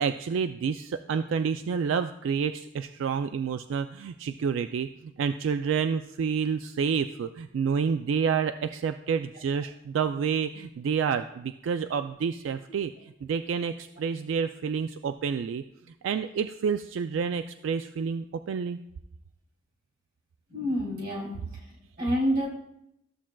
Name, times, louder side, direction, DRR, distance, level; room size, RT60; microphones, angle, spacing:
voice 1, 0.0-15.6 16.0-18.8, right 6 dB, 85° right, 9 dB, 0.3 m, -29 dB
voice 2, 20.5-22.5, equal, 50° right, -2 dB, 2.7 m, -29 dB
14.0 x 7.3 x 2.3 m, 0.80 s
head